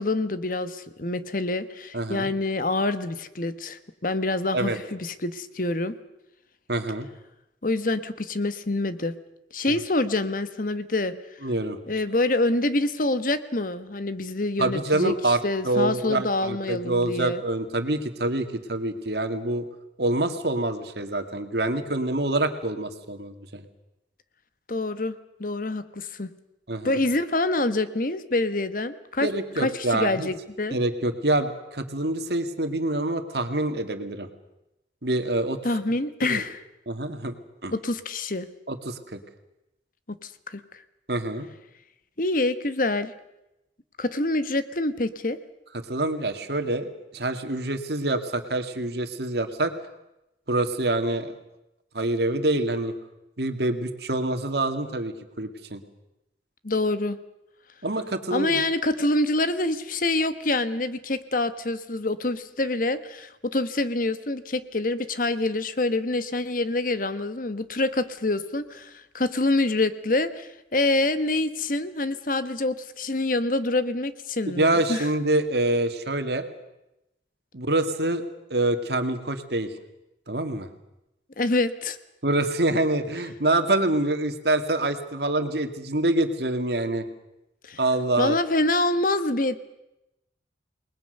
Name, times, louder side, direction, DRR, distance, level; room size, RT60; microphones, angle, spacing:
voice 1, 0.0-5.9 7.6-9.2 9.5-11.2 11.9-15.1 15.4-17.4 24.7-25.1 25.4-26.3 26.8-29.3 29.6-30.8 35.6-36.6 37.7-38.5 40.2-40.6 42.2-43.1 44.0-45.4 56.6-57.2 58.3-75.0 81.4-82.0 87.6-87.8 88.2-89.6, left 2 dB, 50° left, 12 dB, 1.2 m, -26 dB
voice 2, 1.9-2.3 4.5-4.8 6.7-7.1 9.7-9.8 11.4-11.8 14.6-15.4 15.6-19.6 20.0-23.6 26.7-27.0 29.2-30.3 30.7-34.3 35.0-35.6 36.2-36.4 36.9-37.3 37.6-37.7 38.7-39.2 41.1-41.5 45.7-49.7 50.5-51.3 51.9-52.9 53.4-55.8 57.8-58.6 74.4-76.4 77.5-78.2 78.5-79.7 80.3-80.7 82.2-87.1 87.8-88.4, right 2 dB, 65° right, 7 dB, 2.2 m, -26 dB
28.5 x 20.5 x 6.7 m, 0.91 s
head